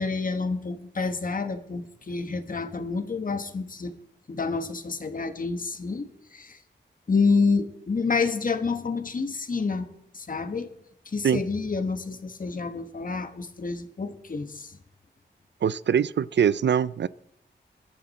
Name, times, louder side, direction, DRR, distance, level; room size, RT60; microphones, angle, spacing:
voice 1, 0.0-3.9 4.3-6.6 7.1-9.9 10.1-10.7 11.0-14.7, left 4 dB, 45° left, 8 dB, 1.4 m, -28 dB
voice 2, 15.6-17.1, right 8 dB, 70° right, 18 dB, 0.4 m, -23 dB
21.5 x 12.0 x 4.3 m, 0.77 s
wide cardioid pair, 130°, 19 cm